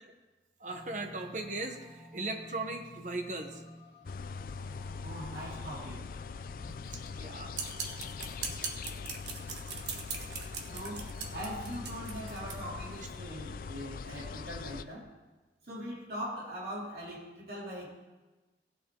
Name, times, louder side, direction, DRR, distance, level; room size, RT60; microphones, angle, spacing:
sound 1, 0.6-14.4, left 2 dB, 15° right, 3.1 m, -54 dB
voice 1, 0.6-3.6 6.9-7.6, right 2 dB, 45° right, 5 dB, 1.1 m, -38 dB
sound 2, 4.1-14.8, left 5 dB, 50° left, 0.4 m, -42 dB
voice 2, 5.0-6.0 10.7-11.0 11.3-15.1 15.7-17.9, equal, 60° right, -6 dB, 3.2 m, -41 dB
sound 3, 7.5-12.6, right 5 dB, 80° right, 1.3 m, -40 dB
17.0 x 9.2 x 3.8 m, 1.2 s
head